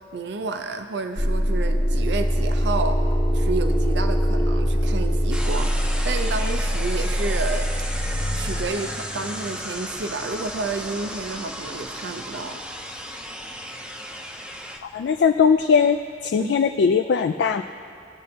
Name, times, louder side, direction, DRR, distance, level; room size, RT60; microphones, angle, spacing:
voice 1, 0.0-3.0 3.3-7.7 8.4-12.6 16.4-16.5, right 3 dB, 65° right, 7 dB, 0.5 m, -30 dB
sound 1, 1.2-8.7, equal, 25° left, 0.8 m, -23 dB
sound 2, 2.5-2.6 2.9-16.1, left 1 dB, 85° left, 1.3 m, -46 dB
sound 3, 5.3-14.8, equal, 5° right, 0.5 m, -34 dB
voice 2, 14.9-16.0 16.2-17.6, left 6 dB, 65° left, 7 dB, 0.3 m, -19 dB
20.0 x 7.6 x 2.8 m, 2.5 s
head